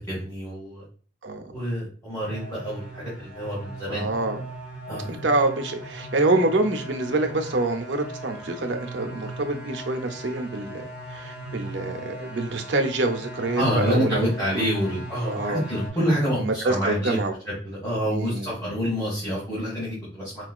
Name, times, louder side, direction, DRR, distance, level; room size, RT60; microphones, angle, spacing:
voice 1, 0.1-0.8 1.5-4.1 4.9-5.2 13.6-17.2 17.4-20.5, equal, 20° left, -9 dB, 1.4 m, -27 dB
sound 1, 2.2-15.9, right 1 dB, 5° right, 1.2 m, -38 dB
voice 2, 3.9-4.4 5.1-10.8 11.1-14.2 14.5-14.6 15.3-15.6 16.4-17.3 18.1-18.7, right 2 dB, 85° right, 5 dB, 0.6 m, -26 dB
4.4 x 2.3 x 2.3 m, 0.42 s
head